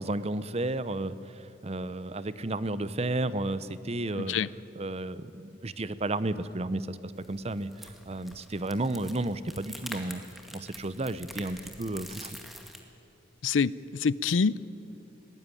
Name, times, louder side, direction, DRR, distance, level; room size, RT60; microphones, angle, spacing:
voice 1, 0.0-4.4 4.8-10.2 10.5-12.4, right 2 dB, 35° right, 15 dB, 0.7 m, -32 dB
voice 2, 4.1-4.5 13.4-14.7, left 5 dB, 85° left, 20 dB, 0.5 m, -26 dB
sound 1, 7.1-12.8, equal, ahead, 1.9 m, -46 dB
21.0 x 16.5 x 9.9 m, 2.7 s
head